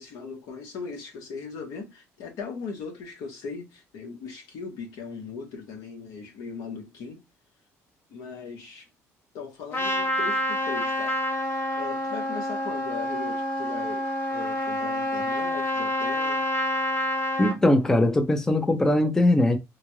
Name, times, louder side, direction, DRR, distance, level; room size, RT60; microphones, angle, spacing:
voice 1, 0.0-7.2 8.1-8.9 9.3-11.2 11.7-14.0 14.3-16.4, left 5 dB, 80° left, 1.3 m, -39 dB
Trumpet, 9.7-17.6, left 1 dB, 35° left, 0.8 m, -28 dB
voice 2, 17.4-19.6, left 1 dB, 10° left, 0.4 m, -21 dB
3.5 x 2.3 x 3.1 m
cardioid pair, 160°, 6 cm